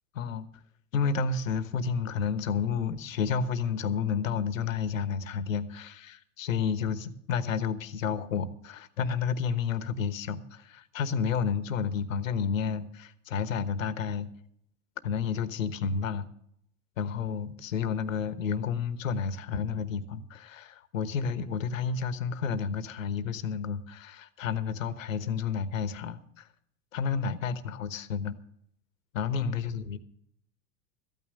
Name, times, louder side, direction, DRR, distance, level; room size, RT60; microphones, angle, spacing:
voice 1, 0.1-0.4 0.9-14.3 15.0-16.3 17.0-26.5 26.9-28.4 29.1-30.0, left 6 dB, 90° left, 1.2 m, -31 dB
14.0 x 9.4 x 6.4 m
hypercardioid pair, 115°, 38 cm